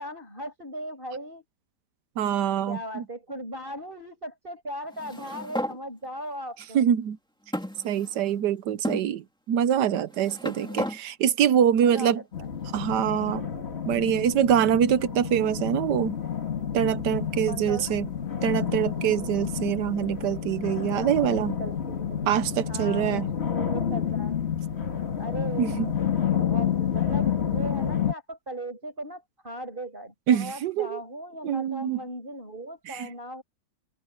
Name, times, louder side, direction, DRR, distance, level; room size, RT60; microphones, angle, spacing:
voice 1, 0.0-1.4 2.7-6.9 10.4-10.9 11.8-12.5 17.5-17.9 21.0-22.4 22.7-24.4 25.2-25.9 26.3-33.4, right 1 dB, 30° right, 7.1 m, -38 dB
voice 2, 2.2-3.0 6.7-7.2 7.8-12.2 12.7-13.5 13.9-16.1 16.7-18.1 18.4-21.5 22.3-23.3 25.6-25.9 30.3-31.0 31.4-32.0 32.9-33.1, right 9 dB, 90° right, 1.4 m, -24 dB
sound 1, 4.9-5.8 6.6-6.7 7.5-8.4 8.8-9.0 9.9-11.0, equal, 5° left, 2.3 m, -33 dB
sound 2, 12.3-28.1, left 8 dB, 40° left, 1.9 m, -29 dB
omnidirectional pair, 1.8 m